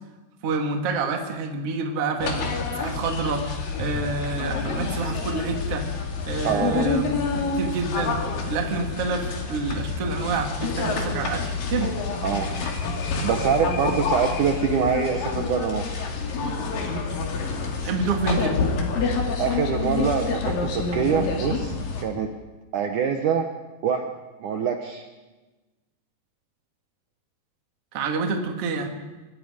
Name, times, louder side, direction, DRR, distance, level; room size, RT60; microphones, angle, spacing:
voice 1, 0.4-3.5 3.8-5.9 6.3-11.9 17.8-18.6 27.9-29.0, right 4 dB, 45° right, 3 dB, 2.2 m, -28 dB
sound 1, 2.2-22.0, left 4 dB, 55° left, 3.8 m, -28 dB
voice 2, 6.4-6.9 12.2-12.5 13.2-16.1 19.4-22.3 22.7-23.5 23.8-24.1 24.4-25.1, right 7 dB, 90° right, 4 dB, 1.7 m, -25 dB
25.5 x 21.0 x 5.1 m, 1.2 s
omnidirectional pair, 5.3 m